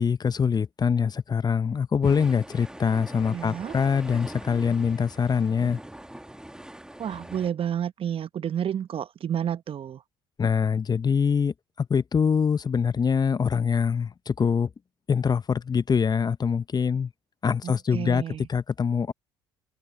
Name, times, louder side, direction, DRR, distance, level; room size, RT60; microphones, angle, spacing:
voice 1, 0.0-5.8 10.4-14.7 15.1-17.1 17.4-18.2 18.5-19.1, left 6 dB, 30° left, 0.8 m, -24 dB
sound 1, 2.0-7.5, right 1 dB, 5° right, 1.8 m, -42 dB
voice 2, 3.3-3.8 7.0-10.0 17.6-18.5, right 9 dB, 45° right, 1.0 m, -30 dB
open air
hypercardioid pair, 60°, 13 cm